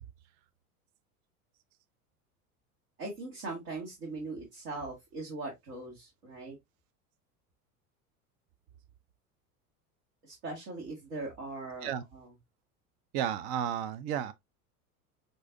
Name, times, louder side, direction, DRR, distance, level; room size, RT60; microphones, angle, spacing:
voice 1, 3.0-6.6 10.2-12.3, right 2 dB, 65° right, 1.8 m, -40 dB
voice 2, 13.1-14.3, right 9 dB, 50° right, 0.5 m, -32 dB
6.0 x 2.6 x 2.6 m
hypercardioid pair, 80°, 45 cm